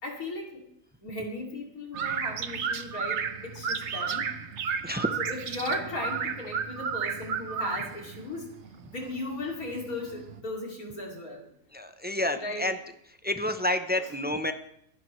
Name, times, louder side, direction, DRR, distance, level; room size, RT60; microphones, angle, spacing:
voice 1, 0.0-0.6 1.0-4.2 5.2-8.5 8.9-11.5 12.3-12.6, left 2 dB, 80° left, 0 dB, 3.3 m, -36 dB
sound 1, 1.9-10.4, right 6 dB, 55° right, 1.1 m, -33 dB
voice 2, 11.7-12.8 13.2-14.5, left 1 dB, 10° right, 8 dB, 0.4 m, -29 dB
26.5 x 11.0 x 3.2 m, 0.73 s
omnidirectional pair, 1.5 m